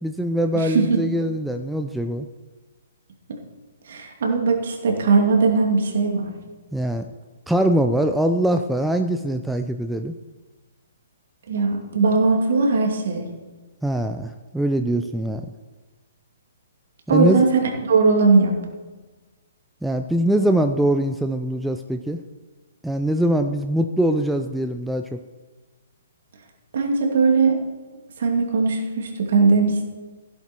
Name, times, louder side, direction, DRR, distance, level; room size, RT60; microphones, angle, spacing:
voice 1, 0.0-2.3 6.7-7.1 7.5-10.1 13.8-15.5 17.1-17.5 19.8-22.2 22.8-25.2, right 1 dB, 5° right, 5 dB, 0.5 m, -22 dB
voice 2, 0.5-1.0 3.3-3.4 3.9-6.3 11.5-13.3 17.1-18.5 26.7-27.6 28.2-29.9, right 4 dB, 55° right, 1 dB, 2.6 m, -19 dB
15.5 x 8.3 x 4.6 m, 1.3 s
figure-of-eight pair, 125°, 0 cm